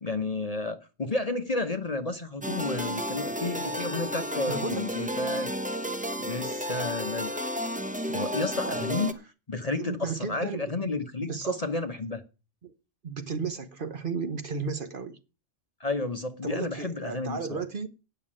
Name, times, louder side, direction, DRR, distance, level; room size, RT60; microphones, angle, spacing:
voice 1, 0.0-5.5 6.2-7.3 8.1-9.2 9.5-12.2 15.8-17.4, left 3 dB, 35° left, 0.9 m, -31 dB
sound 1, 2.4-9.1, equal, 10° right, 0.7 m, -32 dB
voice 2, 4.5-4.9 8.6-8.9 9.8-10.9 11.2-11.6 12.6-12.7 13.0-15.2 16.4-17.9, right 5 dB, 45° right, 1.0 m, -34 dB
9.2 x 6.7 x 8.7 m
omnidirectional pair, 1.3 m